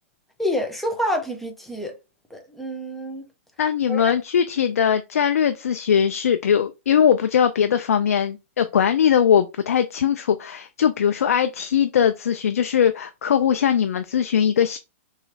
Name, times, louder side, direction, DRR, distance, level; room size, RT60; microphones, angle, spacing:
voice 1, 0.4-2.0 2.3-3.2 3.9-4.1, equal, 5° left, 0.7 m, -27 dB
voice 2, 3.6-14.8, left 8 dB, 85° left, 0.4 m, -20 dB
3.1 x 2.8 x 2.7 m
hypercardioid pair, 135°, 8 cm